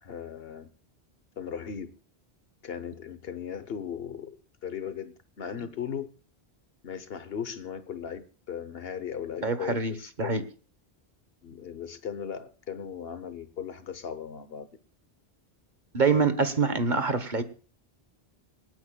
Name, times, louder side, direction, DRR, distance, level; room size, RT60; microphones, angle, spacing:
voice 1, 0.0-0.7 1.4-1.9 2.6-6.1 6.8-10.5 11.4-14.7, left 8 dB, 65° left, 1.2 m, -37 dB
voice 2, 9.4-9.9 10.2-10.4 15.9-17.4, right 4 dB, 50° right, 1.3 m, -25 dB
27.0 x 9.1 x 2.3 m
omnidirectional pair, 1.1 m